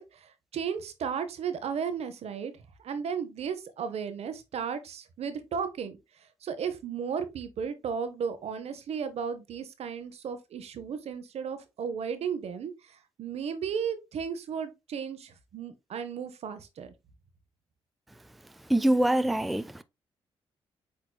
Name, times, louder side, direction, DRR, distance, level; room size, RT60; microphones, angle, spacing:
voice 1, 0.0-2.5 2.8-6.0 6.4-16.9, right 7 dB, 65° right, 0.7 m, -34 dB
voice 2, 18.7-19.8, right 1 dB, ahead, 0.3 m, -24 dB
7.9 x 2.9 x 2.2 m
supercardioid pair, 55°, 11 cm